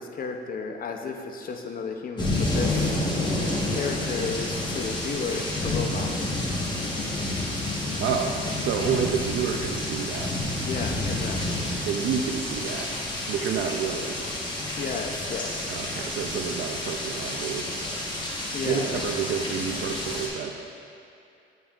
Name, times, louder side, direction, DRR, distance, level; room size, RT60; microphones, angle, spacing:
voice 1, 0.0-3.0 3.7-6.2 10.6-11.6 13.6-13.7 14.8-15.7 18.5-19.0, left 5 dB, 45° left, 4 dB, 0.6 m, -33 dB
sound 1, 2.2-20.3, left 1 dB, 20° left, 1.2 m, -29 dB
voice 2, 8.0-10.3 11.9-12.9 13.3-14.2 15.7-17.9 18.6-20.6, right 7 dB, 70° right, 5 dB, 0.5 m, -29 dB
8.8 x 5.3 x 2.4 m, 2.6 s
cardioid pair, 90°, 20 cm